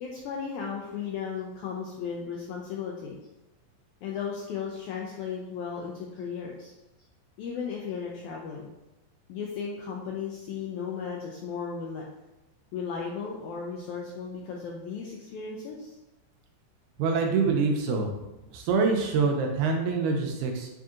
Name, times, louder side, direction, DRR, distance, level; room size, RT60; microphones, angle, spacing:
voice 1, 0.0-3.2 4.0-6.7 7.4-8.7 9.3-12.0 12.7-15.9, left 6 dB, 85° left, -1 dB, 1.7 m, -35 dB
voice 2, 17.0-18.1 18.5-20.7, right 4 dB, 80° right, 2 dB, 2.1 m, -25 dB
6.8 x 2.7 x 2.4 m, 0.98 s
omnidirectional pair, 3.9 m